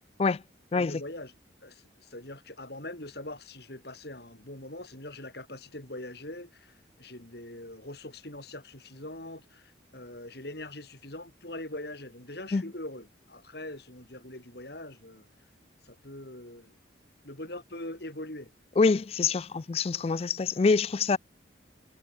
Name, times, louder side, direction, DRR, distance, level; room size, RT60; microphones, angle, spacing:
voice 1, 0.8-1.3 1.6-15.3 15.8-16.8 17.2-18.5, left 1 dB, 55° left, 4.3 m, -42 dB
voice 2, 18.8-21.2, left 4 dB, 30° left, 0.3 m, -25 dB
head